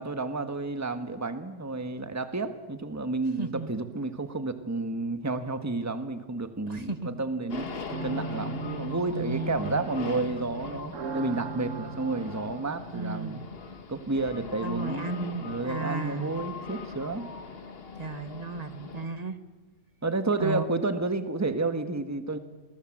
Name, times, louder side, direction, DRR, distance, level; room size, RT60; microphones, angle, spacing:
voice 1, 0.0-7.7 8.0-13.4 13.9-17.3 20.0-22.4, right 3 dB, 15° right, 9 dB, 1.4 m, -31 dB
voice 2, 3.4-3.7 6.7-7.2 9.1-9.8 12.9-13.5 14.6-16.3 18.0-19.4 20.4-20.6, right 3 dB, 30° right, 9 dB, 1.7 m, -34 dB
sound 1, 7.5-19.1, left 5 dB, 50° left, 1.6 m, -41 dB
sound 2, 7.9-13.3, right 4 dB, 80° right, 1.6 m, -38 dB
28.5 x 23.0 x 7.7 m, 1.2 s
omnidirectional pair, 1.3 m